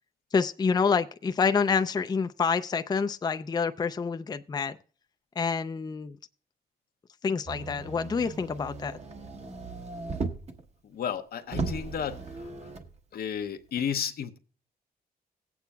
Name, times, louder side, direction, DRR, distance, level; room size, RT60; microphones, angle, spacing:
voice 1, 0.3-4.8 5.4-6.2 7.2-9.0, left 5 dB, 25° left, 0.4 m, -27 dB
Motor vehicle (road), 7.5-10.6 11.1-11.2 11.5-12.9 13.8-13.9, right 4 dB, 40° right, 1.1 m, -37 dB
voice 2, 10.8-12.7 13.1-14.4, left 8 dB, 70° left, 0.8 m, -33 dB
18.0 x 8.4 x 2.3 m
cardioid pair, 80°, 16 cm